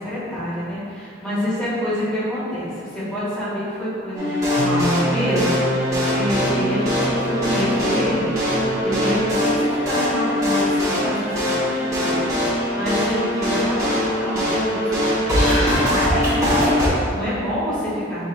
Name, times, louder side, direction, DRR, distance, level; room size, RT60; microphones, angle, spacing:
voice 1, 0.0-18.2, equal, 5° left, -13 dB, 1.5 m, -27 dB
sound 1, 4.2-16.9, left 1 dB, 15° right, 1.0 m, -21 dB
sound 2, 4.6-10.8, right 2 dB, 50° right, 0.3 m, -29 dB
5.0 x 4.3 x 2.2 m, 2.3 s
head